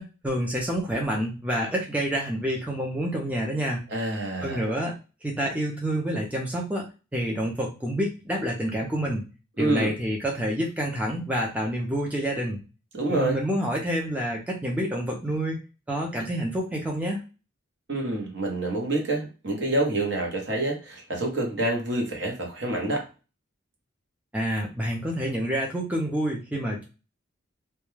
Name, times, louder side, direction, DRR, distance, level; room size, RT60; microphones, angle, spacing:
voice 1, 0.0-3.8 4.4-5.0 5.2-6.8 7.1-9.2 9.6-12.6 13.1-15.6 15.9-17.2 24.3-26.8, equal, 5° right, -1 dB, 0.4 m, -28 dB
voice 2, 3.9-4.6 9.6-9.9 12.9-13.4 17.9-23.1, right 2 dB, 60° right, 1 dB, 0.8 m, -27 dB
2.2 x 2.2 x 3.1 m, 0.31 s
head